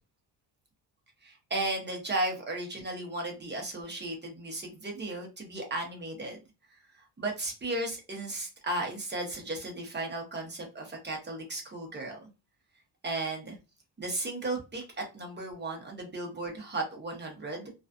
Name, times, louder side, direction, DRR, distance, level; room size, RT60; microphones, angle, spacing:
voice 1, 1.2-6.4 7.2-12.2 13.0-13.6 14.0-17.7, right 2 dB, 25° right, 1 dB, 0.8 m, -35 dB
2.5 x 2.3 x 2.3 m, 0.29 s
cardioid pair, 135°, 46 cm